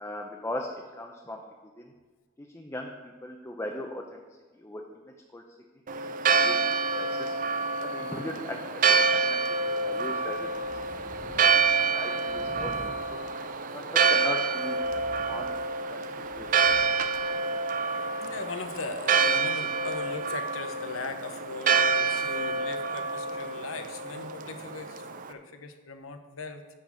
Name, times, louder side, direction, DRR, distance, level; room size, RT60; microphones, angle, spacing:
voice 1, 0.0-1.4 1.8-1.9 2.4-4.2 4.5-5.4 5.9-7.3 7.8-9.4 9.7-10.5 11.2-11.3 11.9-13.2 13.7-15.0 15.3-15.5 15.9-16.5, left 1 dB, 15° left, 1 dB, 0.6 m, -39 dB
Church bell, 5.9-25.3, right 4 dB, 40° right, 0.4 m, -27 dB
sound 1, 9.3-20.0, equal, 60° right, 2.9 m, -51 dB
voice 2, 18.2-25.0 25.3-26.6, left 4 dB, 85° left, 7 dB, 0.9 m, -39 dB
10.5 x 4.0 x 7.2 m, 1.3 s
head